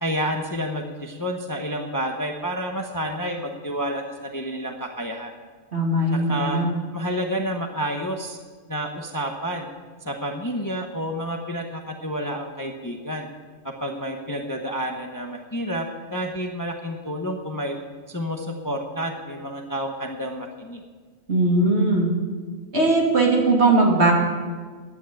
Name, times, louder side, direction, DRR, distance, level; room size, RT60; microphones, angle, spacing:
voice 1, 0.0-5.3 6.1-6.6 6.9-8.4 8.7-9.7 10.0-13.3 13.6-17.8 18.1-20.8, equal, 15° left, 3 dB, 0.9 m, -29 dB
voice 2, 5.7-6.7 21.3-22.1 22.7-24.1, right 2 dB, 55° right, -2 dB, 2.8 m, -19 dB
11.0 x 9.4 x 9.0 m, 1.5 s
omnidirectional pair, 1.4 m